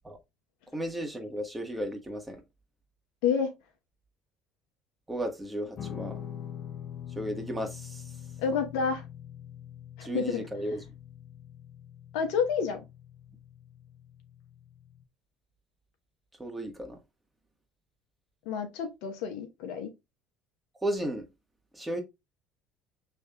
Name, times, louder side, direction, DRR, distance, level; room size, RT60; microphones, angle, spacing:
voice 1, 0.7-2.4 5.1-6.2 7.1-8.1 10.0-10.8 16.4-17.0 20.8-21.3 21.7-22.0, right 1 dB, 10° right, 1.5 m, -34 dB
Guitar, 5.8-15.0, left 9 dB, 50° left, 0.9 m, -44 dB
voice 2, 8.4-9.0 10.0-10.5 12.1-12.8 18.4-19.9, left 6 dB, 70° left, 1.0 m, -29 dB
6.3 x 3.5 x 2.3 m
hypercardioid pair, 65°, 0 cm